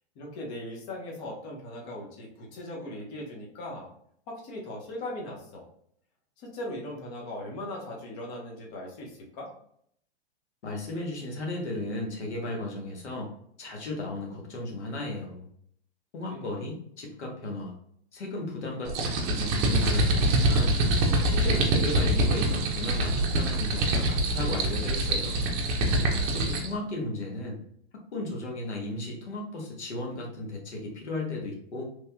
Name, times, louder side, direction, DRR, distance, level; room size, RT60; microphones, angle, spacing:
voice 1, 0.2-3.9 4.3-5.6 6.4-9.5 16.3-16.5, left 1 dB, 35° left, -2 dB, 1.1 m, -39 dB
voice 2, 10.6-13.3 13.6-15.5 16.1-17.7 18.1-20.8 21.2-25.5 26.3-27.6 28.1-31.8, left 2 dB, 90° left, 0 dB, 1.0 m, -35 dB
sound 1, 18.9-26.7, right 1 dB, 35° right, 0.6 m, -25 dB
3.2 x 2.7 x 2.2 m, 0.67 s
hypercardioid pair, 130°, 33 cm